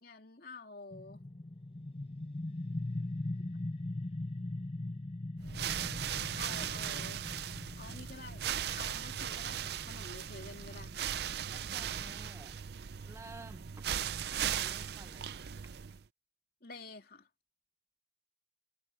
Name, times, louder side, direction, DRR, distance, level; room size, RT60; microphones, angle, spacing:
voice 1, 0.0-1.2 6.3-7.2 7.7-8.4 8.7-11.1 16.6-17.3, left 3 dB, 55° left, 2.9 m, -49 dB
sound 1, 0.9-12.4, left 2 dB, 35° left, 0.8 m, -41 dB
sound 2, 5.4-16.1, right 9 dB, 65° right, 0.5 m, -38 dB
voice 2, 11.5-12.6 13.0-13.9 14.3-15.3 15.6-15.7, right 2 dB, 15° right, 0.9 m, -52 dB
head